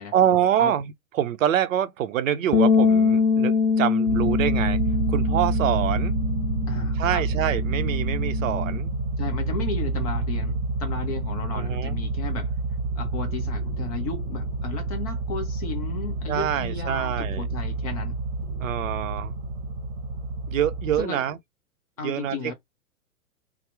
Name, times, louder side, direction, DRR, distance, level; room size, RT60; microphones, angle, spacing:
voice 1, 0.1-4.8 5.1-6.2 7.0-8.9 11.5-12.0 16.3-17.5 18.6-19.3 20.5-21.4 22.0-22.5, right 10 dB, 60° right, 0.5 m, -25 dB
sound 1, 2.5-8.8, left 5 dB, 85° left, 0.6 m, -24 dB
sound 2, 4.1-21.0, right 3 dB, 40° right, 0.9 m, -28 dB
voice 2, 6.7-7.3 9.2-12.5 13.0-18.1 21.0-21.2 22.0-22.5, left 5 dB, 25° left, 0.5 m, -34 dB
2.7 x 2.0 x 3.2 m
figure-of-eight pair, 110°, 44 cm